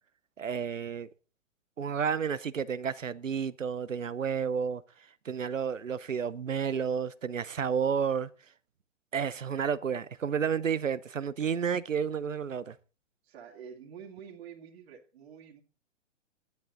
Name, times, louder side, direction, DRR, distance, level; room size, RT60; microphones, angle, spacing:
voice 1, 0.4-1.1 1.8-4.8 5.2-8.3 9.1-12.8, right 7 dB, 85° right, 0.8 m, -31 dB
voice 2, 13.2-15.6, right 7 dB, 55° right, 2.6 m, -48 dB
14.0 x 10.5 x 3.9 m
figure-of-eight pair, 115°, 37 cm